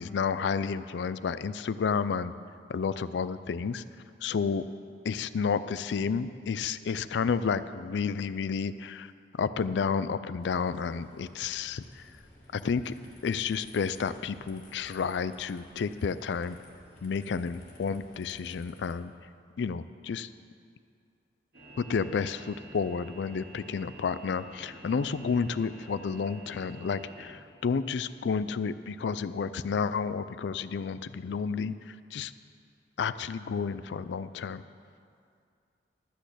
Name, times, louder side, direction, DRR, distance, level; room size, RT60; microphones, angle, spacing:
voice 1, 0.0-2.3 2.7-3.8 4.2-4.6 5.0-12.1 12.5-12.9 13.2-16.6 17.0-19.1 19.6-20.3 21.8-32.3 33.0-34.6, left 5 dB, 80° left, 14 dB, 0.4 m, -31 dB
sound 1, 10.4-19.0, left 1 dB, 45° left, 2.3 m, -54 dB
sound 2, 21.5-27.3, right 1 dB, 60° right, 2.1 m, -49 dB
12.0 x 6.2 x 8.1 m, 2.3 s
head